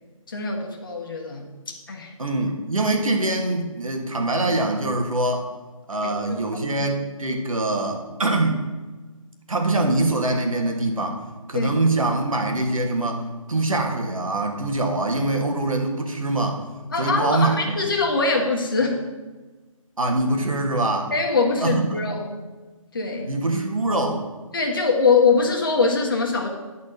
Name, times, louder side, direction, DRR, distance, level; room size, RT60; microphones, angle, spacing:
voice 1, 0.3-1.4 1.9-2.1 6.0-6.4 6.7-6.9 11.5-11.7 16.9-19.0 21.1-22.3 22.9-23.3 24.5-26.5, left 4 dB, 40° left, 0 dB, 1.3 m, -22 dB
voice 2, 2.2-5.5 5.9-8.7 9.5-11.2 11.5-16.6 17.0-17.8 20.0-21.1 21.6-22.0 23.2-24.3, right 2 dB, 70° right, 3 dB, 1.7 m, -24 dB
10.5 x 4.2 x 6.6 m, 1.3 s
figure-of-eight pair, 170°, 18 cm